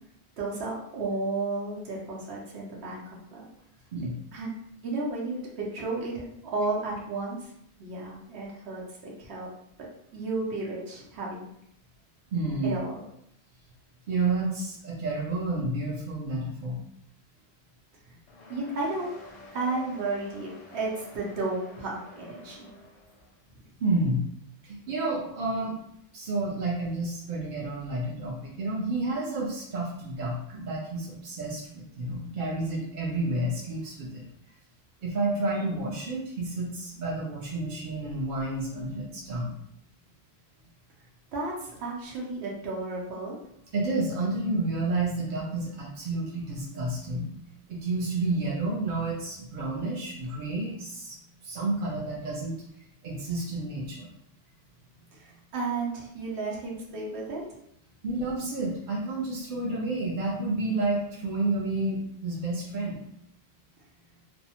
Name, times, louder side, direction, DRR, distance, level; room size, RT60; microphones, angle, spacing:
voice 1, 0.4-3.0 3.3-3.4 4.3-4.5 4.8-6.3 6.5-7.5 7.8-9.5 9.8-9.9 10.1-11.5 12.6-13.0 18.5-19.1 19.5-22.7 41.3-43.4 55.1-57.4, right 3 dB, 90° right, -3 dB, 0.9 m, -33 dB
voice 2, 12.3-12.8 14.1-16.8 23.8-24.3 24.6-25.8 26.1-34.2 35.0-39.6 43.7-47.4 47.7-51.2 51.4-52.6 53.0-54.1 58.0-63.0, right 2 dB, 60° right, -4 dB, 0.6 m, -30 dB
sound 1, 18.3-23.4, left 2 dB, 55° left, 0.5 m, -49 dB
2.6 x 2.0 x 2.8 m, 0.75 s
omnidirectional pair, 1.1 m